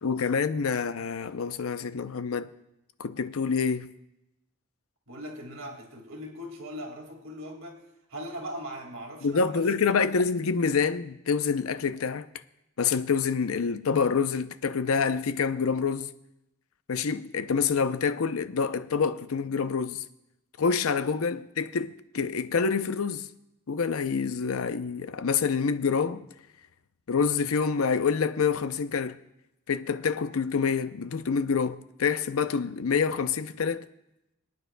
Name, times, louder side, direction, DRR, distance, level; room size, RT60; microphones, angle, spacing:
voice 1, 0.0-2.5 3.0-3.9 9.2-12.3 12.8-16.1 16.9-20.0 20.6-23.3 23.7-26.3 27.1-29.2 29.7-33.8, left 5 dB, 90° left, 0.6 m, -27 dB
voice 2, 5.1-7.8 8.1-9.7, equal, 70° right, 2.1 m, -40 dB
26.0 x 9.3 x 2.2 m
head